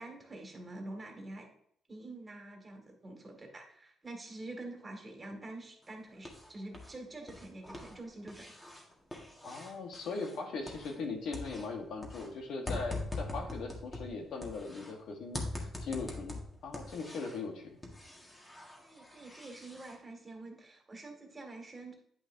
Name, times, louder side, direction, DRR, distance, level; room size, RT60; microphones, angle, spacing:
voice 1, 0.0-1.5 1.9-8.5 18.8-21.9, right 2 dB, 25° right, 2 dB, 2.0 m, -46 dB
sound 1, 5.8-7.0 7.2-11.1 11.3-14.9 15.3-17.5 17.8-20.0, left 2 dB, 20° left, 1.7 m, -43 dB
voice 2, 9.4-16.4 16.6-17.8, left 4 dB, 75° left, 3 dB, 1.4 m, -39 dB
9.2 x 5.5 x 2.7 m, 0.67 s
cardioid pair, 90°, 0 cm